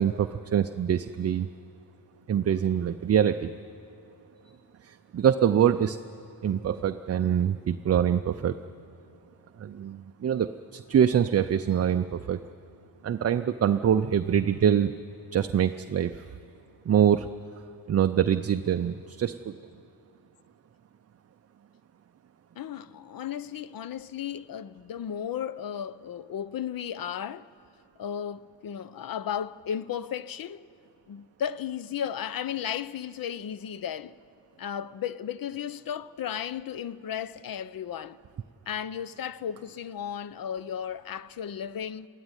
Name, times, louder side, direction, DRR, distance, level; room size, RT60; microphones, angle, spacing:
voice 1, 0.0-1.5 2.3-3.5 4.8-6.0 6.4-8.6 9.6-12.4 13.0-14.9 15.3-16.2 16.9-17.3 17.9-19.6, right 9 dB, 40° right, 0.4 m, -24 dB
voice 2, 22.6-27.5 28.0-30.7 31.1-34.1 34.6-38.2 38.7-42.1, left 9 dB, 55° left, 0.6 m, -34 dB
22.0 x 14.0 x 9.7 m
wide cardioid pair, 150°, 42 cm